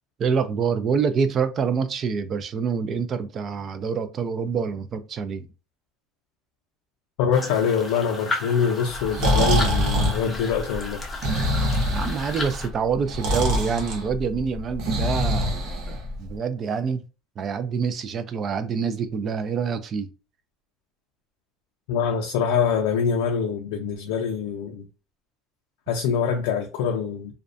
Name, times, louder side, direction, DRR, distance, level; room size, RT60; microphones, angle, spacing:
voice 1, 0.2-5.5 11.8-17.0 17.4-20.1, right 6 dB, 35° right, 0.3 m, -26 dB
voice 2, 7.2-11.0 21.9-24.9 25.9-27.4, left 6 dB, 85° left, 0.4 m, -24 dB
sound 1, 7.3-12.7, left 2 dB, 10° left, 0.6 m, -34 dB
Breathing, 8.9-16.3, equal, 55° right, 0.8 m, -25 dB
2.4 x 2.2 x 2.5 m
cardioid pair, 145°, 0 cm